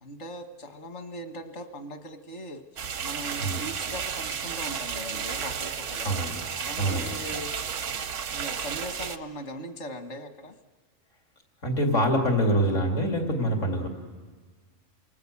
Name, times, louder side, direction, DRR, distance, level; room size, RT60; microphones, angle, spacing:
voice 1, 0.0-2.6 3.0-6.1 6.5-7.5 8.3-10.5, equal, 70° left, 6 dB, 1.8 m, -39 dB
sound 1, 2.8-9.2, right 7 dB, 80° right, 1.2 m, -33 dB
voice 2, 6.0-6.4 6.8-7.2 11.6-13.9, equal, 90° left, 2 dB, 2.9 m, -25 dB
27.5 x 19.0 x 8.4 m, 1.4 s
omnidirectional pair, 1.3 m